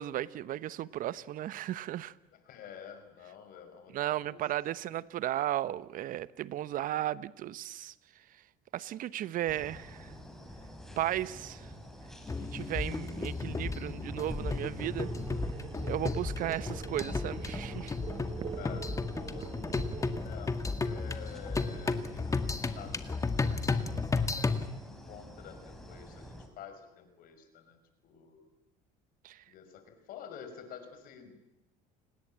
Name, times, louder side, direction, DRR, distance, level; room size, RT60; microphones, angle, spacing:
voice 1, 0.0-2.1 3.9-7.9 8.7-10.1 11.0-11.7 12.4-15.1 15.8-18.0 29.2-29.4, right 13 dB, 60° right, 1.0 m, -35 dB
voice 2, 2.5-4.4 4.7-5.0 18.6-19.5 20.2-23.9 24.8-28.5 29.5-31.4, left 7 dB, 65° left, 5.7 m, -49 dB
sound 1, 9.5-26.5, equal, 5° left, 5.3 m, -47 dB
sound 2, 12.3-24.7, left 3 dB, 20° left, 1.9 m, -34 dB
sound 3, 15.0-20.2, right 7 dB, 35° right, 1.1 m, -44 dB
29.5 x 19.5 x 8.8 m
cardioid pair, 100°, 16 cm